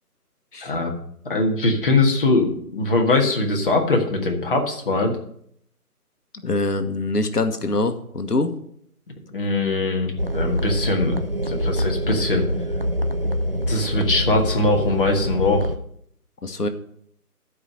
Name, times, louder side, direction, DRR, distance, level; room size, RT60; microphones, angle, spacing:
voice 1, 0.6-1.0 1.2-5.2 9.3-11.1 11.5-12.5 13.7-15.7, left 2 dB, 35° left, 2 dB, 1.5 m, -21 dB
voice 2, 6.4-8.5 16.4-16.7, left 2 dB, 80° left, 8 dB, 1.3 m, -24 dB
sound 1, 10.2-15.8, equal, 40° right, 0.4 m, -25 dB
11.0 x 5.0 x 6.5 m, 0.67 s
figure-of-eight pair, 155°, 46 cm